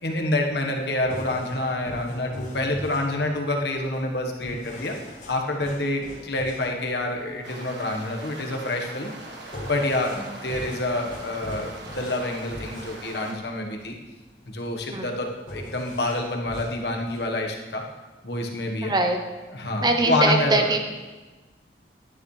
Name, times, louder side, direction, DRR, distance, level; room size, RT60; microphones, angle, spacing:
voice 1, 0.0-5.0 5.3-9.1 9.6-10.1 10.4-14.0 14.5-17.8 18.2-18.9 19.5-20.7, left 2 dB, 70° left, 1 dB, 1.3 m, -27 dB
sound 1, 1.0-17.5, equal, 45° left, 2.4 m, -41 dB
sound 2, 7.4-13.3, right 2 dB, 80° right, 1.4 m, -41 dB
voice 2, 18.8-19.2 19.8-20.8, right 2 dB, 25° right, 4 dB, 0.8 m, -22 dB
12.0 x 10.0 x 3.3 m, 1.2 s
head